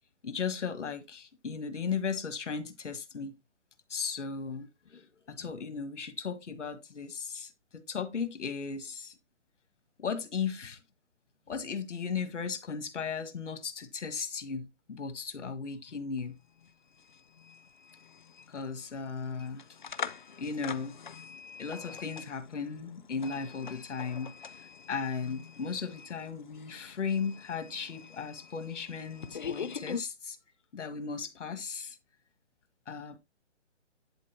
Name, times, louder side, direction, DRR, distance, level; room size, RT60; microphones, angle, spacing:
voice 1, 0.2-3.3 3.9-9.2 10.0-10.8 11.5-16.4 18.5-19.6 20.4-21.0 21.6-24.3 24.9-30.4 30.7-32.0 32.9-33.2, left 5 dB, 80° left, 1.8 m, -36 dB
sound 1, 16.2-16.3 16.5-30.0, left 6 dB, 45° left, 0.6 m, -44 dB
10.5 x 4.1 x 4.3 m
hypercardioid pair, 175°, 36 cm